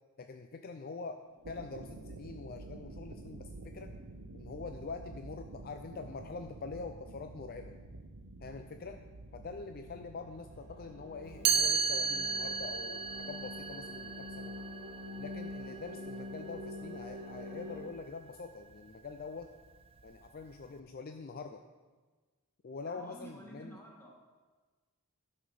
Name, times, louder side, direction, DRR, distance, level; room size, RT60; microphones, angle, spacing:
voice 1, 0.2-3.9 4.3-7.7 8.4-9.0 9.3-14.5 15.2-19.5 20.0-21.6 22.6-23.8, left 4 dB, 45° left, 7 dB, 0.4 m, -45 dB
sound 1, 1.3-20.9, right 2 dB, 85° right, 0.8 m, -51 dB
sound 2, 10.1-17.8, left 1 dB, 45° right, 2.8 m, -46 dB
Chime, 11.5-17.3, right 6 dB, 25° right, 0.4 m, -35 dB
voice 2, 22.9-24.2, right 1 dB, 10° left, -2 dB, 1.9 m, -51 dB
12.0 x 5.5 x 6.4 m, 1.3 s
head